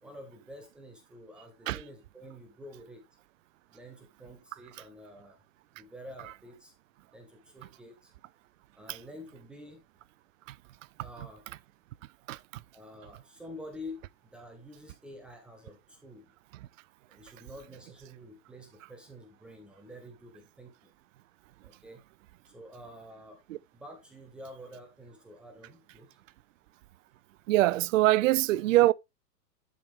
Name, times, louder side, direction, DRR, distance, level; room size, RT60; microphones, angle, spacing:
voice 1, 0.0-3.0 3.7-5.4 5.8-6.7 7.1-8.1 8.8-9.8 11.0-11.4 12.7-14.0 14.3-16.3 17.1-20.7 21.6-22.0 22.5-23.4 23.7-26.2, left 1 dB, ahead, 0.3 m, -48 dB
voice 2, 12.3-12.6 23.5-23.6 27.5-28.9, right 16 dB, 55° right, 0.5 m, -24 dB
11.5 x 4.7 x 3.5 m
hypercardioid pair, 125°, 49 cm